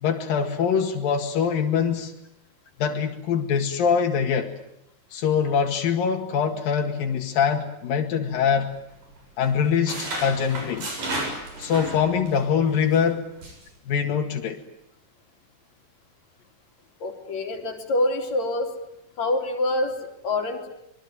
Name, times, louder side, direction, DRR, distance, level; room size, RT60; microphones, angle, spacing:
voice 1, 0.0-2.1 2.8-4.5 5.1-8.7 9.4-10.9 11.6-13.2 13.9-14.6, left 7 dB, 85° left, 4 dB, 3.7 m, -23 dB
sound 1, 8.3-9.2 9.4-12.4 12.7-13.0 13.4-13.7, right 1 dB, 70° right, 8.7 m, -34 dB
voice 2, 17.0-18.7 19.2-20.7, left 2 dB, 55° left, 2 dB, 4.3 m, -26 dB
25.5 x 23.0 x 9.5 m, 0.77 s
omnidirectional pair, 3.9 m